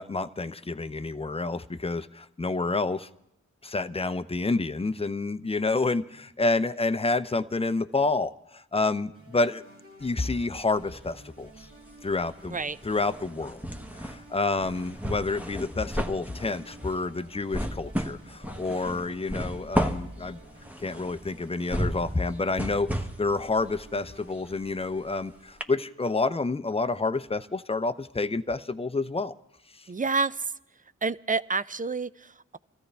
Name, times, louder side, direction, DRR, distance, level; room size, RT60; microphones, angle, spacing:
voice 1, 0.0-3.1 3.6-9.6 10.0-11.7 12.0-12.6 12.8-13.6 14.0-20.4 20.8-29.3, left 3 dB, 20° left, 0.6 m, -29 dB
sound 1, 9.1-26.1, right 2 dB, 45° right, 2.1 m, -53 dB
sound 2, 10.0-11.1 11.4-25.2 25.6-25.7, equal, 5° right, 1.2 m, -34 dB
voice 2, 29.9-30.5 31.0-32.6, right 4 dB, 25° right, 0.5 m, -29 dB
25.5 x 13.5 x 3.4 m
cardioid pair, 40°, 31 cm